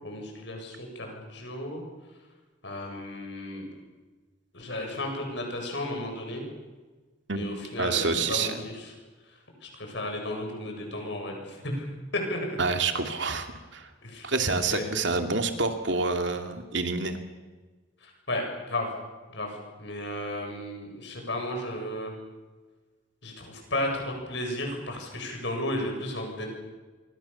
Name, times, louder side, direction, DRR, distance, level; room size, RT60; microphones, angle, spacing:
voice 1, 0.0-1.8 2.6-3.6 4.5-6.4 7.3-8.9 9.3-12.5 14.0-14.3 14.7-15.0 18.0-18.9 19.3-22.1 23.2-26.5, left 1 dB, 65° left, 2 dB, 8.0 m, -34 dB
voice 2, 7.8-8.6 12.6-13.5 13.7-13.9 14.2-17.2, right 4 dB, 65° right, 6 dB, 2.6 m, -27 dB
27.5 x 23.0 x 7.1 m, 1.3 s
head